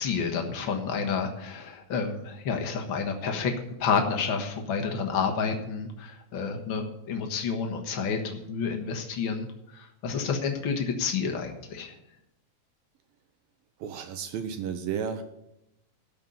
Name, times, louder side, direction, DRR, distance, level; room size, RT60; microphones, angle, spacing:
voice 1, 0.0-3.5 3.8-11.9, left 5 dB, 75° left, 3 dB, 1.1 m, -30 dB
voice 2, 13.8-15.2, right 7 dB, 75° right, 7 dB, 2.4 m, -32 dB
12.5 x 5.3 x 8.9 m, 0.88 s
omnidirectional pair, 4.4 m